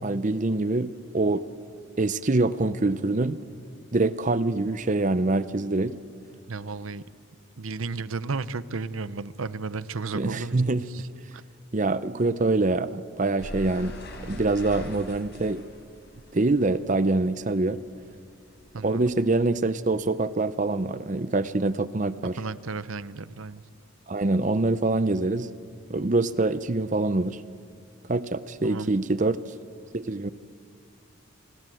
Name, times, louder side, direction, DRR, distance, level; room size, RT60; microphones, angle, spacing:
voice 1, 0.0-1.4 2.0-3.4 3.9-5.9 10.1-10.8 11.7-13.9 14.2-15.6 16.3-17.8 18.8-22.4 24.1-25.5 25.9-27.4 28.1-29.4 29.9-30.3, right 2 dB, 35° right, 14 dB, 0.6 m, -25 dB
voice 2, 6.5-7.0 7.6-10.6 10.9-11.1 18.7-19.1 22.4-23.6 28.6-28.9, right 4 dB, 75° right, 16 dB, 0.8 m, -33 dB
sound 1, 13.4-18.1 18.4-20.0, left 1 dB, 50° left, 4.4 m, -42 dB
29.0 x 22.5 x 7.8 m, 2.3 s
head